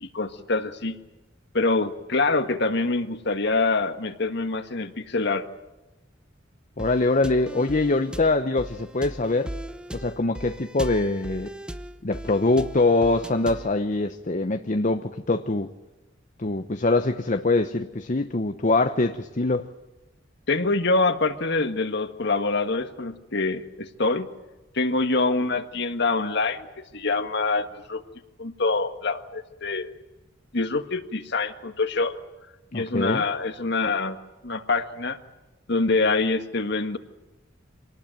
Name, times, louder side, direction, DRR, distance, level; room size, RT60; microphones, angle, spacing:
voice 1, 0.0-1.0 1.5-5.5 20.5-24.3 24.7-26.7 26.9-28.0 28.4-29.9 30.5-32.1 32.7-34.2 34.4-35.2 35.7-37.0, left 3 dB, 60° left, 1.7 m, -25 dB
voice 2, 6.8-9.5 9.9-11.5 12.0-15.7 16.4-19.7 32.7-33.2, left 2 dB, 40° left, 0.9 m, -23 dB
sound 1, 6.8-13.8, equal, 5° right, 0.9 m, -38 dB
26.0 x 19.0 x 9.0 m
head